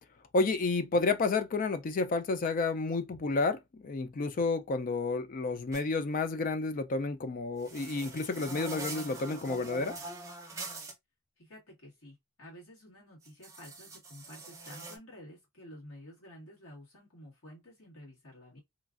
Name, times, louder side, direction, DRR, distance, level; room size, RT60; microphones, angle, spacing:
voice 1, 0.3-10.0, left 3 dB, 40° left, 0.4 m, -30 dB
sound 1, 5.7-5.8 7.6-10.9 13.2-15.0, right 3 dB, 15° right, 0.6 m, -43 dB
voice 2, 11.4-18.6, left 1 dB, 75° left, 1.8 m, -51 dB
3.1 x 2.4 x 2.4 m
head